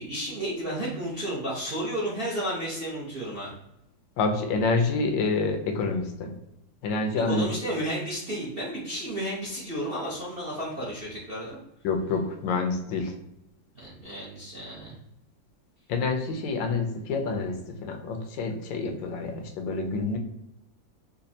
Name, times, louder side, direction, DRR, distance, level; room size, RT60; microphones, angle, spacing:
voice 1, 0.0-3.5 7.1-11.6 13.7-15.0, right 1 dB, 50° right, -6 dB, 0.7 m, -32 dB
voice 2, 4.2-6.3 6.8-7.5 11.8-13.1 15.9-20.2, left 3 dB, 75° left, 4 dB, 1.3 m, -27 dB
5.2 x 2.2 x 2.7 m, 0.84 s
omnidirectional pair, 2.1 m